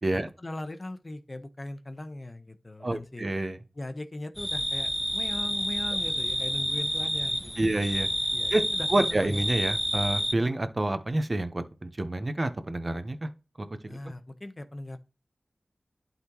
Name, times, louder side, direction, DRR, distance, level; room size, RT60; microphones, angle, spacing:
voice 1, 0.1-3.3 3.7-7.8 8.3-9.4 13.9-15.0, left 1 dB, 40° left, 1.0 m, -39 dB
voice 2, 2.8-3.6 7.6-8.1 8.5-8.6 8.9-13.3 13.6-14.0, right 1 dB, 45° right, 1.0 m, -28 dB
sound 1, 4.4-10.3, equal, 5° right, 0.5 m, -29 dB
11.5 x 3.9 x 3.0 m
cardioid pair, 45°, 0 cm